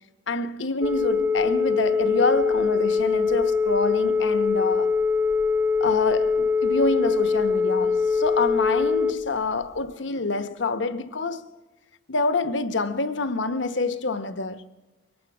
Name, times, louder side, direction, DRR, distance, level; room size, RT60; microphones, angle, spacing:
voice 1, 0.3-4.9 5.8-11.4 12.1-14.7, left 3 dB, 65° left, 1.0 m, -27 dB
Telephone, 0.8-9.1, left 5 dB, 15° right, 0.7 m, -23 dB
24.0 x 18.5 x 6.1 m
head